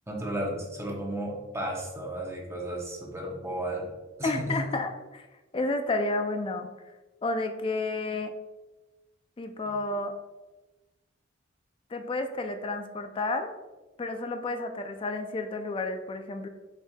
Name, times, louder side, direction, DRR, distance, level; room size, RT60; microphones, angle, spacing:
voice 1, 0.1-3.9 4.2-4.6 9.7-9.8, right 1 dB, 15° right, -1 dB, 0.8 m, -34 dB
voice 2, 4.2-5.3 5.5-6.7 7.2-8.3 9.4-10.1 11.9-13.6 14.0-16.5, left 2 dB, 25° left, 6 dB, 0.4 m, -31 dB
5.3 x 4.4 x 2.2 m, 1.2 s
head